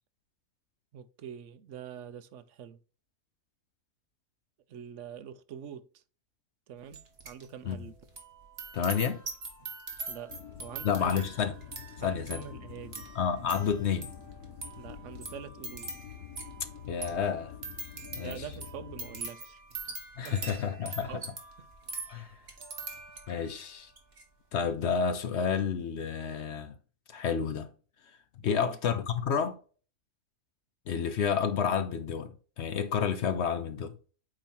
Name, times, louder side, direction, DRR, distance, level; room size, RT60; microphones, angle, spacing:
voice 1, 0.9-2.8 4.7-6.0 6.7-7.9 10.1-11.3 11.6-11.7 12.0-13.0 14.7-15.9 17.9-19.6 20.2-21.3 21.6-21.7 28.4-28.8, right 8 dB, 65° right, 0.9 m, -45 dB
sound 1, 6.9-7.5 7.7-23.5 23.9-24.2, right 3 dB, 45° right, 1.6 m, -43 dB
voice 2, 8.7-9.2 10.8-11.5 12.0-12.5 13.1-14.1 16.9-17.6 18.2-18.4 20.2-21.2 22.1-22.3 23.3-23.9 24.5-26.8 27.1-27.7 28.4-29.6 30.9-33.9, left 7 dB, 60° left, 0.8 m, -30 dB
sound 2, 10.3-19.2, left 10 dB, 85° left, 1.3 m, -47 dB
8.7 x 2.9 x 4.3 m
omnidirectional pair, 1.5 m